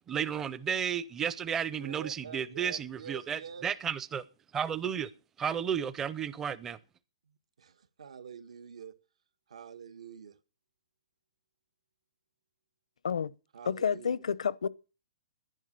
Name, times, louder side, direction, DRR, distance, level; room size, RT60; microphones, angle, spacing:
voice 1, 0.1-4.2 4.5-5.1 5.4-6.8, right 8 dB, 10° right, 0.6 m, -33 dB
voice 2, 1.5-3.7 7.3-8.9 9.5-10.3 13.5-14.2, right 7 dB, 80° right, 1.7 m, -47 dB
voice 3, 13.7-14.7, left 6 dB, 90° left, 0.8 m, -30 dB
11.0 x 11.0 x 6.7 m
hypercardioid pair, 165°, 3 cm